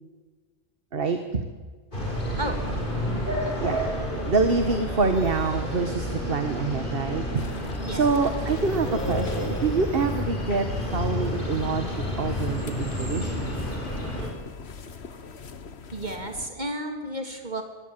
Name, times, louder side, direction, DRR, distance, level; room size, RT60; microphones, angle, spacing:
voice 1, 0.9-1.4 3.6-3.8 4.3-7.4 7.9-13.6, right 4 dB, 60° right, 7 dB, 1.7 m, -26 dB
sound 1, 1.9-14.3, equal, 50° left, 5.0 m, -30 dB
sound 2, 7.3-16.5, left 5 dB, 80° left, 1.5 m, -42 dB
voice 2, 15.9-17.6, right 1 dB, 45° right, 5 dB, 3.3 m, -32 dB
24.0 x 17.0 x 9.2 m, 1.4 s
omnidirectional pair, 1.1 m